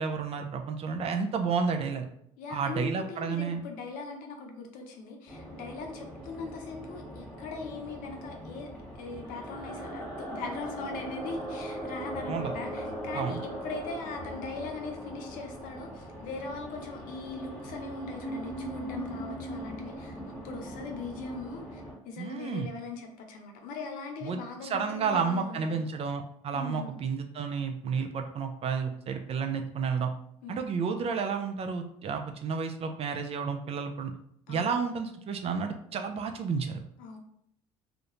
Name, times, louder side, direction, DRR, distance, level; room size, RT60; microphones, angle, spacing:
voice 1, 0.0-2.1 2.5-3.6 12.3-12.5 13.1-13.4 22.2-22.7 24.2-30.1 30.5-34.1 34.5-36.8, right 5 dB, 40° right, 5 dB, 0.4 m, -31 dB
voice 2, 2.4-8.7 9.0-20.2 20.4-25.8 26.5-27.0 30.4-30.6 34.5-34.9 37.0-37.2, left 4 dB, 65° left, 3 dB, 0.6 m, -40 dB
sound 1, 5.3-21.9, right 1 dB, 10° left, 1.2 m, -40 dB
2.4 x 2.1 x 2.9 m, 0.70 s
hypercardioid pair, 70°, 16 cm